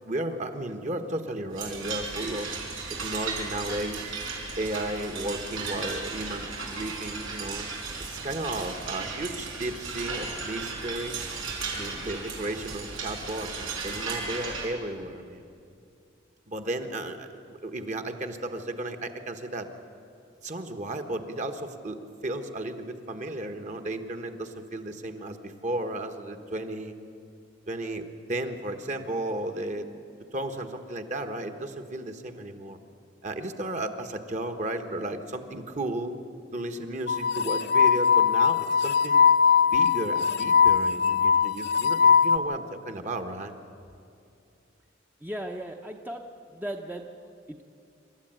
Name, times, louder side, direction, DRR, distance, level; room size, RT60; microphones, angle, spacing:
voice 1, 0.0-2.5 3.0-4.0 4.6-7.7 8.1-11.2 11.7-15.4 16.5-17.3 17.6-19.7 20.4-26.9 27.7-28.0 28.3-29.9 30.3-32.8 33.2-36.2 36.5-39.3 39.7-43.5, right 1 dB, 40° right, 7 dB, 1.3 m, -34 dB
sound 1, 1.5-14.7, right 4 dB, 90° right, 4.8 m, -35 dB
sound 2, 37.1-42.4, left 6 dB, 55° left, 0.8 m, -21 dB
voice 2, 45.2-46.2 46.5-47.0 47.5-47.6, right 1 dB, 10° right, 3 dB, 0.8 m, -36 dB
27.0 x 13.0 x 9.0 m, 2.6 s
head